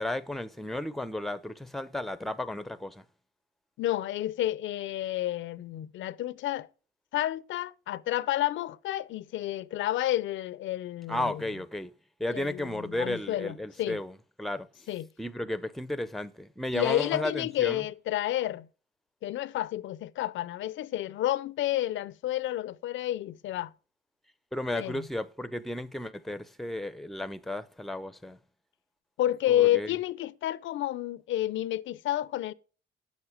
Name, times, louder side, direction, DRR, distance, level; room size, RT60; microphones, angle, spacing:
voice 1, 0.0-3.0 11.1-11.9 12.2-14.9 15.2-17.9 24.5-28.4 29.5-29.9, left 1 dB, ahead, 0.6 m, -34 dB
voice 2, 3.8-6.7 7.1-11.4 12.3-14.0 14.9-15.1 16.7-18.7 19.2-23.7 24.8-25.1 29.2-32.5, left 13 dB, 75° left, 0.5 m, -30 dB
8.2 x 7.3 x 4.8 m
cardioid pair, 90°, 20 cm